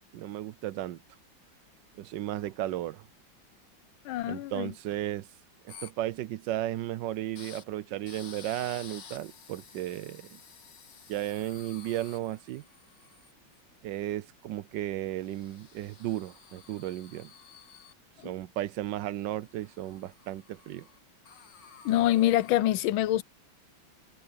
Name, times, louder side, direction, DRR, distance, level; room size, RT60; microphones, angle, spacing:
voice 1, 0.1-1.0 1.9-3.1 4.3-5.3 5.6-10.4 11.1-12.6 13.8-17.3 18.2-20.9, right 13 dB, 70° right, 1.2 m, -34 dB
voice 2, 4.1-4.7 21.8-23.2, left 13 dB, 85° left, 1.4 m, -25 dB
sound 1, 5.7-5.9 7.4-7.6 8.1-13.6 15.2-17.9 19.5-21.0 21.3-22.5, left 6 dB, 60° left, 2.2 m, -52 dB
omnidirectional pair, 2.2 m